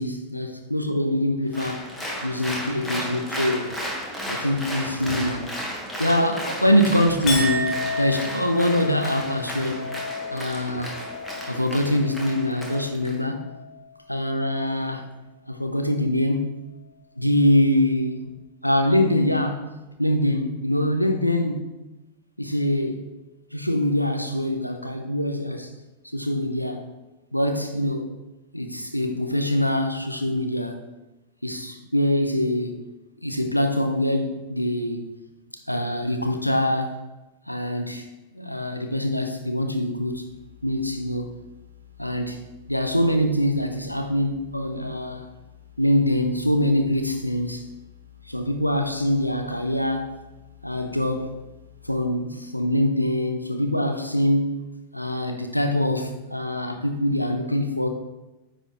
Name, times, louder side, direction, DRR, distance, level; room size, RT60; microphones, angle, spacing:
voice 1, 0.0-1.9 2.2-3.7 4.3-5.5 6.0-9.8 10.3-11.0 11.5-13.4 14.1-15.1 15.5-16.5 17.2-18.3 18.6-19.7 20.0-21.7 22.4-23.1 23.5-25.7 26.1-26.8 27.3-28.1 28.5-30.8 31.4-32.8 33.2-35.0 35.7-37.1 37.5-38.1 38.3-40.3 40.6-41.4 42.0-45.3 45.8-47.7 48.3-50.1 50.6-51.3 51.8-54.7 54.9-57.9, left 1 dB, 90° left, 0.6 m, -24 dB
Applause, 1.5-13.2, equal, 10° left, 1.5 m, -34 dB
Chink clink, 7.3-13.8 14.2-14.8, left 2 dB, 35° left, 1.1 m, -33 dB
sound 1, 40.1-51.9, left 11 dB, 70° right, 0.7 m, -50 dB
9.7 x 4.0 x 3.1 m
figure-of-eight pair, 90°, 0 cm